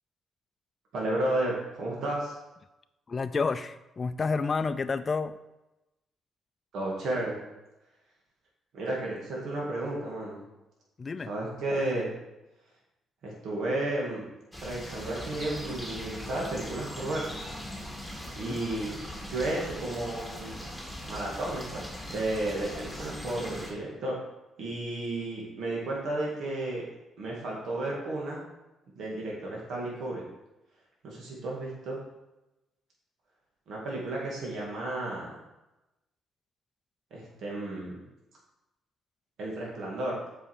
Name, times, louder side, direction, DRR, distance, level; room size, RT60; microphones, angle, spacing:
voice 1, 0.9-2.3 6.7-7.4 8.7-10.4 11.3-12.2 13.2-14.2 14.6-17.2 18.4-18.9 19.3-20.6 21.1-24.2 24.6-26.8 27.2-28.4 29.0-30.2 31.0-32.0 33.7-35.4 37.1-38.0 39.4-40.2, right 2 dB, 70° right, -3 dB, 2.3 m, -33 dB
voice 2, 3.1-5.4 11.0-11.3 18.4-18.6, left 4 dB, 35° left, 10 dB, 0.4 m, -30 dB
sound 1, 14.5-23.7, equal, 5° right, 2.2 m, -40 dB
7.5 x 5.5 x 5.0 m, 0.99 s
cardioid pair, 90°, 0 cm